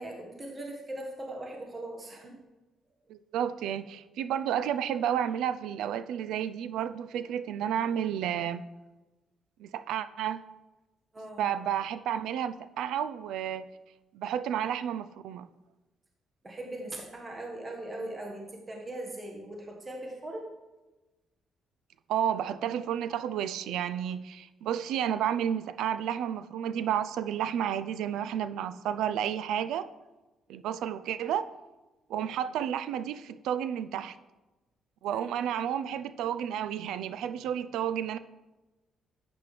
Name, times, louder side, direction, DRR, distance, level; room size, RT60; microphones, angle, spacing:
voice 1, 0.0-2.4 11.1-11.5 16.4-20.5 35.1-35.2, right 1 dB, 25° right, 0 dB, 1.4 m, -40 dB
voice 2, 3.1-8.7 9.6-10.4 11.4-13.7 14.1-15.5 22.1-29.9 30.5-31.5 32.1-34.2 35.0-38.2, right 9 dB, 85° right, 14 dB, 0.4 m, -31 dB
12.0 x 8.6 x 3.3 m, 1.1 s
cardioid pair, 90°, 0 cm